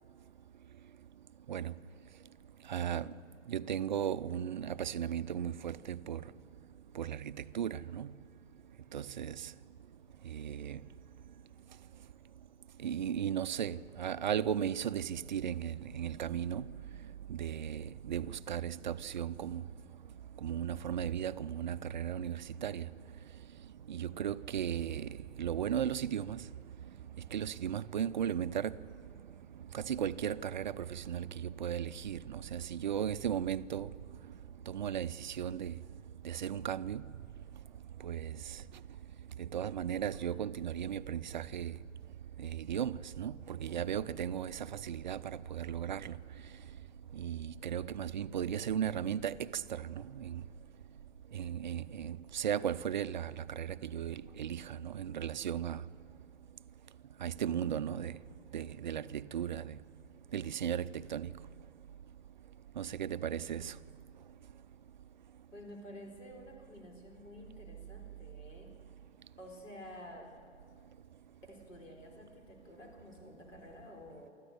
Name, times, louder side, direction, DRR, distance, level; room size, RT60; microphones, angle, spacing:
voice 1, 2.7-3.1 3.5-6.2 6.9-8.1 8.9-9.5 10.2-10.8 12.8-16.7 17.3-19.6 20.4-22.9 23.9-26.4 27.3-28.8 29.7-33.9 34.7-35.7 36.2-37.0 38.0-38.6 39.4-41.7 42.4-46.2 47.1-50.4 51.3-55.8 57.2-58.1 58.5-59.8 60.3-61.3 62.8-63.8, right 9 dB, 40° right, 0.4 m, -36 dB
voice 2, 65.5-68.7 69.4-70.3 71.5-74.3, left 1 dB, 75° left, 4.4 m, -51 dB
24.5 x 13.5 x 8.1 m
figure-of-eight pair, 125°, 39 cm